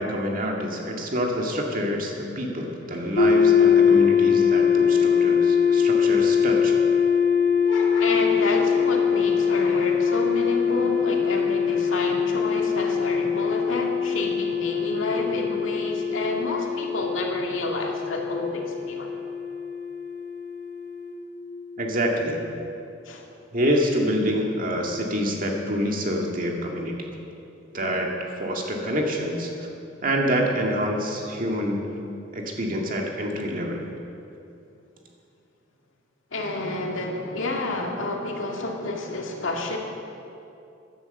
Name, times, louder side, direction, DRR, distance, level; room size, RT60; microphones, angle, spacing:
voice 1, 0.0-6.7 21.8-22.4 23.5-27.1 27.7-29.7 30.0-31.9 32.3-33.9, equal, 45° right, 0 dB, 2.0 m, -27 dB
sound 1, 3.2-21.1, left 6 dB, 55° left, 2.5 m, -22 dB
voice 2, 7.6-19.1 23.1-23.2 36.3-39.8, left 2 dB, 80° left, 0 dB, 2.1 m, -29 dB
15.0 x 11.0 x 6.6 m, 2.7 s
head